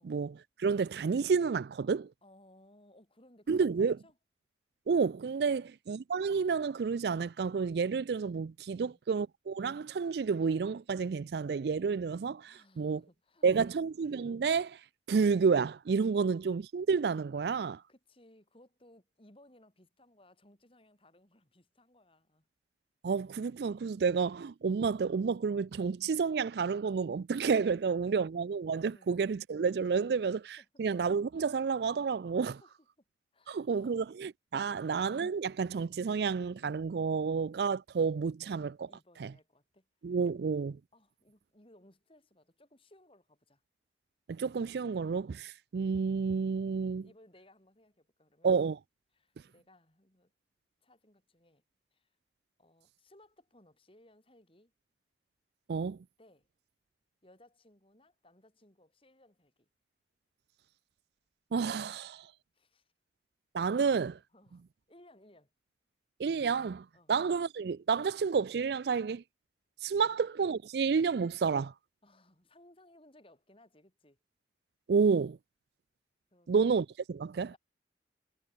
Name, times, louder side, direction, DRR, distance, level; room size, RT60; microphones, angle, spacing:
voice 1, 0.0-2.1 3.5-4.0 4.9-13.0 13.4-14.8 15.1-17.8 23.0-32.6 33.5-38.9 39.2-39.3 40.0-40.8 44.3-47.1 48.4-48.8 55.7-56.0 61.5-62.3 63.5-64.2 66.2-69.2 69.8-71.7 74.9-75.4 76.5-77.5, right 5 dB, 60° right, 0.4 m, -30 dB
voice 2, 2.2-4.2 5.4-5.7 8.7-9.0 12.5-13.7 17.9-22.5 28.0-28.2 28.9-29.1 30.6-30.7 32.5-32.7 33.3-34.1 34.7-34.9 38.9-39.9 40.9-43.6 47.0-48.5 49.1-50.3 50.8-51.6 51.9-52.1 52.6-54.7 56.2-56.5 57.2-59.7 62.5-62.9 64.3-65.5 66.9-67.1 70.0-70.2 72.0-74.2 76.3-76.6 77.4-77.6, left 1 dB, 30° left, 4.6 m, -62 dB
head